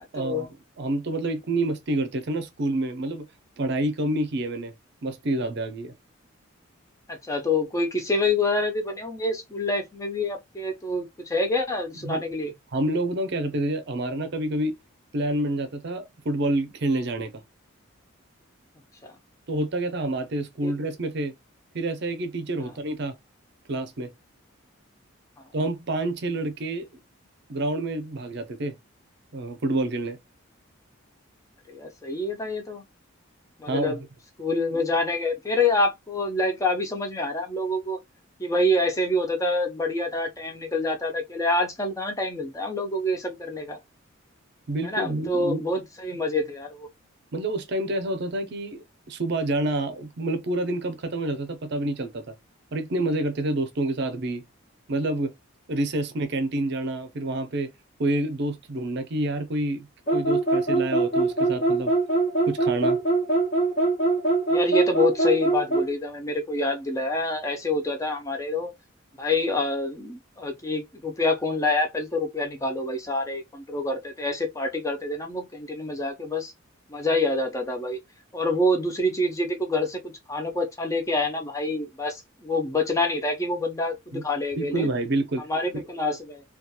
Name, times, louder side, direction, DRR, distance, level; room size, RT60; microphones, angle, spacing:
voice 1, 0.1-0.5 0.8-3.3 3.6-4.7 5.0-5.9 12.0-12.2 12.7-14.7 15.1-17.3 19.5-21.3 21.7-23.1 23.7-24.1 25.5-26.9 27.5-28.7 29.3-30.2 33.7-34.0 44.7-45.6 47.3-52.3 52.7-54.4 54.9-55.3 55.7-57.7 58.0-59.9 60.1-61.9 62.4-63.0 84.1-84.2 84.6-85.5, right 1 dB, 50° right, 0.5 m, -28 dB
voice 2, 7.1-12.5 19.0-19.1 20.6-20.7 31.7-32.8 33.6-34.0 34.4-38.0 38.4-43.8 44.8-46.9 64.5-68.7 69.2-76.5 76.9-78.0 78.3-80.0 80.3-84.9 85.5-86.4, left 2 dB, 15° left, 0.4 m, -26 dB
sound 1, 60.1-65.9, right 2 dB, 40° left, 0.8 m, -22 dB
2.8 x 2.3 x 2.2 m
head